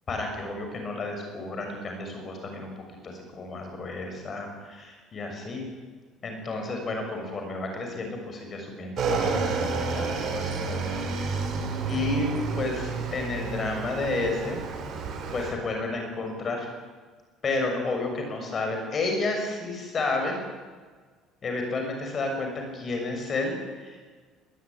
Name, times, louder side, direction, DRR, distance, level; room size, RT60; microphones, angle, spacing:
voice 1, 0.1-2.7 3.0-5.6 6.2-11.4 11.8-12.3 12.6-14.6 15.3-16.7 17.4-20.3 21.4-24.0, left 3 dB, 25° left, 3 dB, 6.4 m, -31 dB
Motorcycle / Engine, 9.0-15.5, right 4 dB, 45° right, 5.7 m, -30 dB
22.0 x 19.5 x 10.0 m, 1.5 s
cardioid pair, 170°, 0 cm